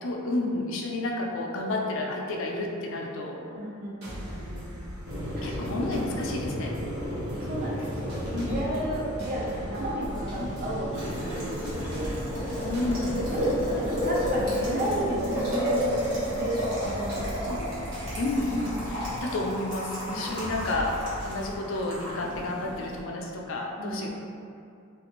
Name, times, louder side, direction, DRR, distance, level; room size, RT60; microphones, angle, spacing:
voice 1, 0.0-3.4 5.4-6.7 8.3-8.6 10.4-10.5 12.6-13.2 17.5-17.6 18.2-24.1, left 2 dB, 60° left, 0 dB, 0.4 m, -31 dB
voice 2, 3.5-4.8 5.3-5.6 7.3-12.2 13.3-17.6 20.0-20.4 23.8-24.1, right 1 dB, 45° right, -4 dB, 0.6 m, -33 dB
sound 1, 4.0-21.5, equal, 90° right, 1.0 m, -41 dB
Boiling, 5.1-23.0, equal, 65° right, 1.1 m, -32 dB
sound 2, 9.5-19.2, equal, 10° left, 0.5 m, -42 dB
3.3 x 2.5 x 2.9 m, 2.5 s
head